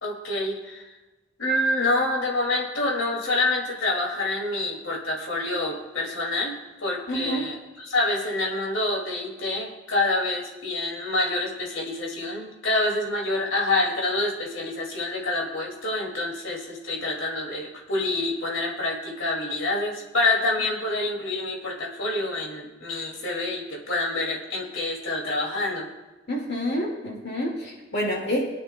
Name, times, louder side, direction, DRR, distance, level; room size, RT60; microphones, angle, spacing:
voice 1, 0.0-0.9 1.4-25.9, left 2 dB, 90° left, -1 dB, 2.4 m, -27 dB
voice 2, 7.1-7.5 26.3-28.4, equal, 55° left, -2 dB, 2.1 m, -28 dB
22.0 x 10.0 x 2.2 m, 1.1 s
head